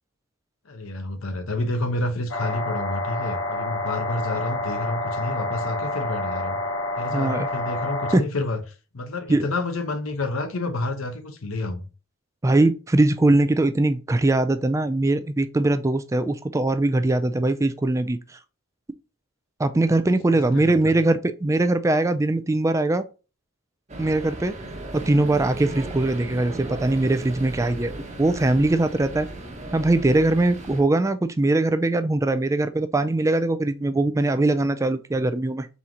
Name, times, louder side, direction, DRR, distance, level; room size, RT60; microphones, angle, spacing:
voice 1, 0.6-6.6 7.0-8.6 8.9-11.9 20.3-21.0, left 2 dB, 90° left, 0.9 m, -29 dB
sound 1, 2.3-8.2, left 2 dB, 65° left, 0.9 m, -28 dB
voice 2, 7.1-7.5 8.1-8.2 9.3-9.5 12.4-18.2 19.6-23.0 24.0-24.5 24.9-29.3 29.7-35.7, right 2 dB, 15° right, 0.4 m, -21 dB
sound 2, 23.9-30.8, right 2 dB, 35° right, 1.0 m, -36 dB
4.2 x 3.8 x 2.9 m
head